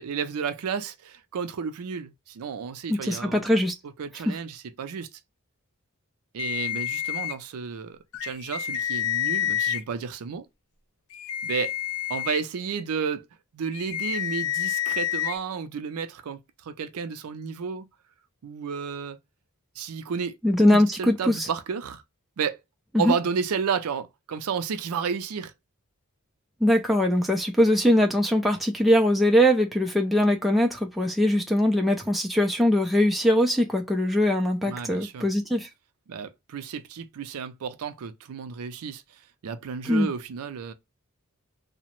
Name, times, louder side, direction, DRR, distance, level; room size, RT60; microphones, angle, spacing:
voice 1, 0.0-3.4 3.8-5.2 6.3-10.5 11.4-11.7 12.1-13.2 13.5-17.9 18.4-19.2 19.8-20.3 20.7-22.0 22.4-22.6 23.0-25.5 34.6-35.3 36.1-40.7, right 6 dB, 80° right, 0.4 m, -32 dB
voice 2, 2.9-3.7 4.3-4.4 20.4-21.5 22.9-23.1 26.6-35.7 39.9-40.1, left 1 dB, ahead, 0.3 m, -21 dB
sound 1, 6.4-7.3 8.1-9.8 11.1-12.4 13.7-15.4, left 11 dB, 75° left, 0.4 m, -28 dB
2.8 x 2.1 x 2.9 m
head